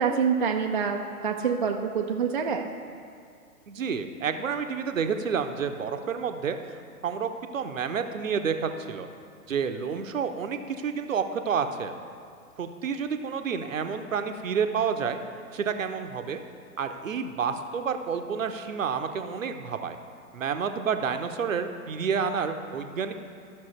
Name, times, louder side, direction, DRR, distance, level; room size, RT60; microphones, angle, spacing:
voice 1, 0.0-2.7, right 6 dB, 35° right, 3 dB, 0.4 m, -26 dB
voice 2, 3.7-6.6 7.0-9.1 9.5-11.9 12.6-15.2 15.5-16.4 16.8-20.0 20.3-23.1, right 6 dB, 60° right, 7 dB, 0.8 m, -29 dB
12.5 x 6.0 x 4.3 m, 2.3 s
figure-of-eight pair, 115°, 45 cm